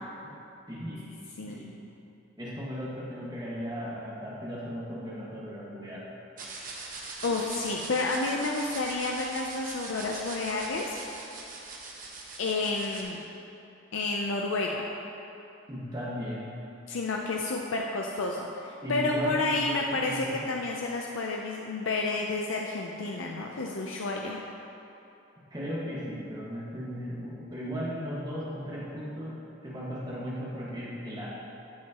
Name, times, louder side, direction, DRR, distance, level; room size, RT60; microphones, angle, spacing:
voice 1, 0.7-1.2 1.5-1.7 2.4-6.1 15.7-16.5 18.8-20.4 25.5-29.4 29.6-31.3, equal, 20° right, -7 dB, 1.7 m, -36 dB
voice 2, 1.4-1.7 7.2-11.0 12.4-13.2 13.9-14.9 16.9-24.4, left 3 dB, 90° left, 0 dB, 0.6 m, -30 dB
sound 1, 6.4-13.0, right 3 dB, 45° right, 1.1 m, -41 dB
13.0 x 7.5 x 3.0 m, 2.9 s
head